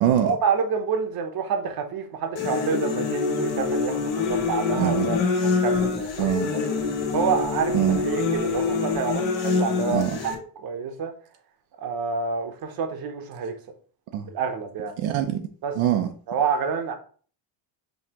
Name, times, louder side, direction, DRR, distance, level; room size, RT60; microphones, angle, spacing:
voice 1, 0.2-6.6 7.1-11.1 11.8-13.5 14.3-15.0 15.6-15.8 16.3-16.9, right 6 dB, 50° right, 0.8 m, -28 dB
sound 1, 2.4-10.3, left 4 dB, 75° left, 1.2 m, -25 dB
voice 2, 4.8-5.1 6.2-6.5 7.7-8.0 9.9-10.2 14.1-14.2 15.0-15.4 15.8-16.1, right 11 dB, 80° right, 0.6 m, -23 dB
5.4 x 2.8 x 2.9 m
cardioid pair, 135°, 46 cm